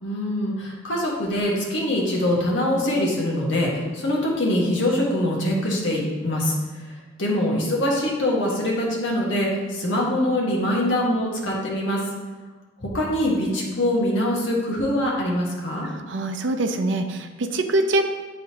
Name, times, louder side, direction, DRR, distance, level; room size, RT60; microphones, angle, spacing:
voice 1, 0.0-6.6 7.2-12.0 12.8-15.9, left 1 dB, 80° left, -3 dB, 1.5 m, -23 dB
voice 2, 15.8-18.1, right 2 dB, 70° right, 6 dB, 0.6 m, -24 dB
9.3 x 4.0 x 2.9 m, 1.3 s
head